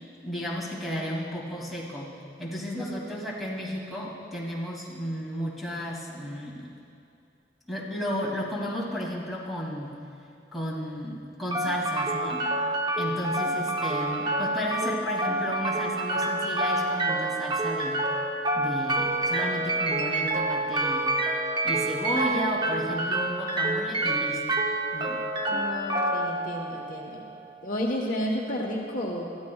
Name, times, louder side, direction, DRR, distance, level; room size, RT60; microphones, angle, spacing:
voice 1, 0.2-2.1 2.4-6.6 7.7-10.0 10.5-12.5 13.0-18.0 18.5-21.1 21.6-24.6 24.9-25.2, equal, ahead, -7 dB, 2.6 m, -33 dB
sound 1, 11.5-27.5, right 2 dB, 25° right, 0.9 m, -28 dB
voice 2, 25.5-27.3 27.6-29.3, equal, 50° left, -1 dB, 1.2 m, -31 dB
22.0 x 14.0 x 2.4 m, 2.6 s
head